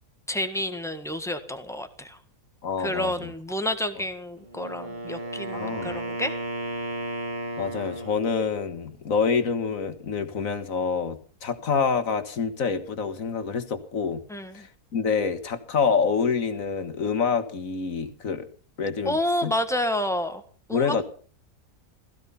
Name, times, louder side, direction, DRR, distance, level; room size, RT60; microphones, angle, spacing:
voice 1, 0.3-2.2 2.8-6.3 14.3-14.7 19.0-20.4 20.7-21.0, left 1 dB, ahead, 8 dB, 1.5 m, -29 dB
voice 2, 2.6-3.3 5.5-5.9 7.6-14.2 14.5-18.5 18.8-19.5 20.7-21.0, left 5 dB, 60° left, 10 dB, 2.0 m, -27 dB
Wind instrument woodwind instrument, 4.4-8.3, right 1 dB, 30° right, 2.2 m, -34 dB
16.5 x 15.5 x 5.7 m, 0.43 s
omnidirectional pair, 1.6 m